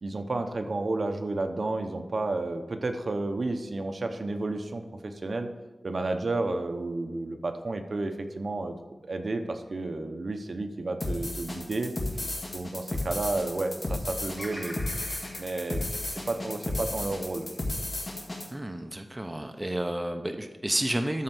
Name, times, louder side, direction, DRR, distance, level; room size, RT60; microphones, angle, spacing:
voice 1, 0.0-5.5 5.8-8.7 9.0-11.9 12.5-14.7 15.4-15.8 16.3-17.5, right 2 dB, 55° right, 6 dB, 0.8 m, -31 dB
sound 1, 11.0-18.5, left 1 dB, 35° left, 1.9 m, -33 dB
Bird vocalization bird call bird song, 14.3-18.6 19.1-19.9, equal, 10° left, 2.7 m, -47 dB
voice 2, 18.5-21.2, right 1 dB, 15° right, 5 dB, 0.7 m, -31 dB
13.0 x 4.5 x 6.0 m, 1.3 s
wide cardioid pair, 105°, 0 cm